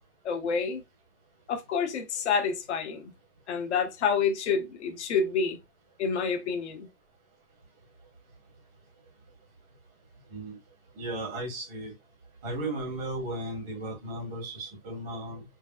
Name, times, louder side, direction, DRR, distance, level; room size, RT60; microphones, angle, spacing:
voice 1, 0.2-0.8 1.5-3.1 3.5-5.6 6.0-6.9, left 5 dB, 50° left, 0.5 m, -28 dB
voice 2, 10.9-11.9 12.4-15.4, right 1 dB, 10° right, 0.6 m, -35 dB
3.1 x 2.3 x 2.2 m
hypercardioid pair, 175°, 47 cm